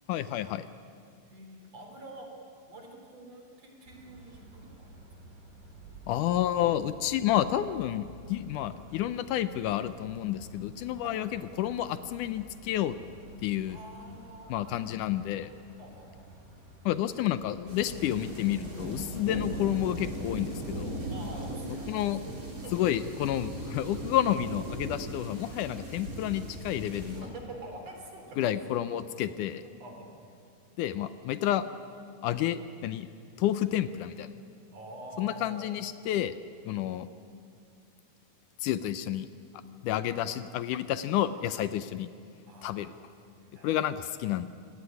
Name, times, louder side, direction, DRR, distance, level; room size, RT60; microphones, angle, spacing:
voice 1, 0.1-0.7 6.1-13.0 13.4-13.8 14.5-15.5 16.9-21.0 21.9-22.2 22.7-27.3 28.4-29.6 30.8-31.6 32.2-33.1 33.4-34.3 35.2-36.3 36.7-37.1 38.6-39.3 39.8-42.1 42.6-42.9 43.6-44.5, left 12 dB, 75° left, 13 dB, 2.2 m, -30 dB
voice 2, 1.2-2.3 2.7-5.1 11.0-11.2 13.7-14.9 15.8-16.3 21.1-22.3 22.6-23.0 27.0-28.6 29.6-30.4 30.7-30.8 34.7-35.7 40.2-40.4 42.5-44.0, right 1 dB, 50° right, 2 dB, 4.6 m, -47 dB
sound 1, 3.9-20.5, right 1 dB, 75° right, 6.3 m, -52 dB
sound 2, 17.7-27.2, right 1 dB, 25° right, 4.0 m, -38 dB
27.5 x 17.5 x 10.0 m, 2.4 s
omnidirectional pair, 3.8 m